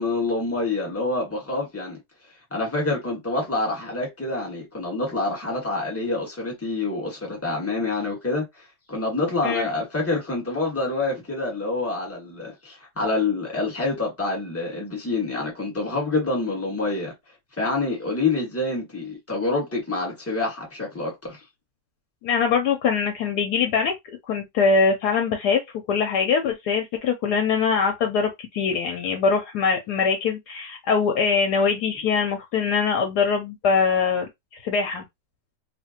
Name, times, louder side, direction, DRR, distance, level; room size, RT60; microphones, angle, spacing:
voice 1, 0.0-2.0 2.5-17.1 17.6-21.4, left 3 dB, 10° left, 1.2 m, -27 dB
voice 2, 22.2-23.9 24.3-25.6 25.9-34.2 34.6-35.0, left 5 dB, 70° left, 1.0 m, -22 dB
2.7 x 2.5 x 2.8 m
omnidirectional pair, 1.9 m